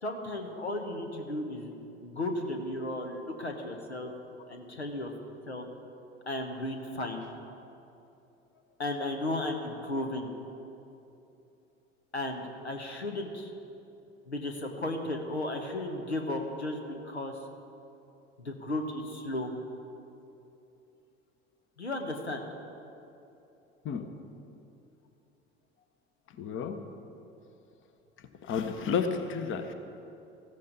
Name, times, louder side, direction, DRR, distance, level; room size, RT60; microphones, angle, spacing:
voice 1, 0.0-1.7 2.0-4.1 4.5-5.1 5.5-5.6 6.3-7.2 8.8-10.3 12.1-13.5 14.3-17.4 18.4-19.5 21.8-22.5, left 1 dB, 90° left, 4 dB, 1.1 m, -34 dB
voice 2, 26.4-26.8 28.4-29.7, left 6 dB, 40° left, 8 dB, 1.1 m, -31 dB
14.5 x 14.0 x 4.0 m, 2.8 s
figure-of-eight pair, 70°, 32 cm